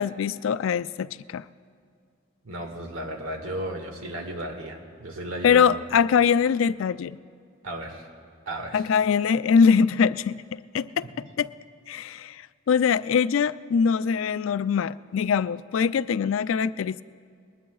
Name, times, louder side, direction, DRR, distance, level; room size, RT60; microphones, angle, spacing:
voice 1, 0.0-1.4 5.4-7.2 8.7-11.0 11.4-11.5 11.9-17.0, left 6 dB, 80° left, 15 dB, 0.3 m, -23 dB
voice 2, 2.4-5.7 7.6-8.1 8.5-8.8, right 1 dB, 85° right, 3 dB, 1.8 m, -34 dB
21.5 x 19.5 x 2.3 m, 2.3 s
head